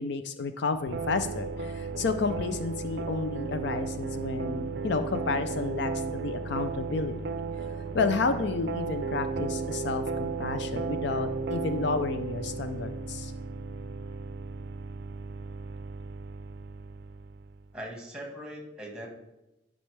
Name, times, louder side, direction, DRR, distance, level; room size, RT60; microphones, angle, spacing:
voice 1, 0.0-7.4 7.9-13.3, left 4 dB, 60° left, 9 dB, 0.4 m, -31 dB
sound 1, 0.9-17.6, right 4 dB, 55° right, 0.4 m, -34 dB
voice 2, 17.7-19.1, equal, 5° right, -1 dB, 1.6 m, -40 dB
11.5 x 5.3 x 3.3 m, 0.95 s
head